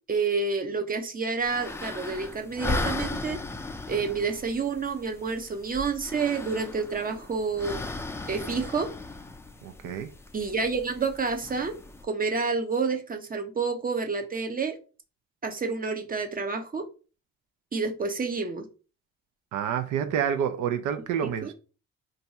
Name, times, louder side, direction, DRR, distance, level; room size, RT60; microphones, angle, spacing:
voice 1, 0.1-3.4 3.9-7.9 8.3-8.9 10.3-11.7 12.0-14.8 15.4-16.9 17.7-18.7 21.4-21.5, right 4 dB, 30° right, 0.6 m, -29 dB
sound 1, 1.4-12.0, left 2 dB, 10° left, 0.3 m, -37 dB
voice 2, 9.6-10.1 19.5-21.5, right 8 dB, 80° right, 0.5 m, -28 dB
2.6 x 2.3 x 4.0 m
cardioid pair, 90°, 30 cm